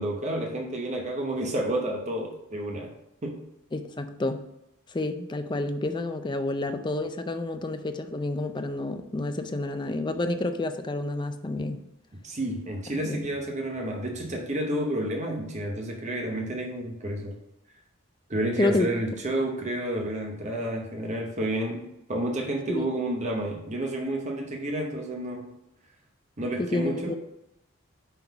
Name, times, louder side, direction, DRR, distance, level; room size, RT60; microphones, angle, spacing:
voice 1, 0.0-2.9 3.2-3.4 12.2-17.4 18.3-25.6 26.4-27.2, right 1 dB, 35° right, 1 dB, 0.8 m, -30 dB
voice 2, 3.7-4.4 4.9-11.8 13.0-13.3 18.6-18.9 22.7-22.9 26.6-27.1, left 2 dB, 20° left, 8 dB, 0.4 m, -29 dB
5.7 x 3.8 x 5.8 m, 0.84 s
head